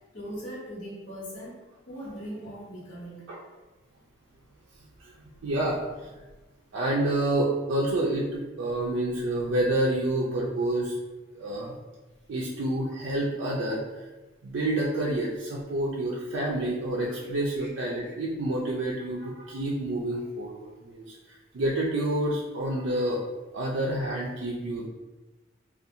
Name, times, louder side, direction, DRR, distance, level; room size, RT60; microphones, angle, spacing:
voice 1, 0.1-1.6 1.9-3.2 17.6-17.7, equal, 85° left, -6 dB, 1.1 m, -39 dB
voice 2, 5.4-6.1 6.7-11.0 11.4-11.7 12.3-13.8 14.4-21.2 21.5-23.2 23.5-24.9, right 1 dB, 85° right, -5 dB, 0.4 m, -28 dB
2.5 x 2.3 x 2.7 m, 1.2 s
head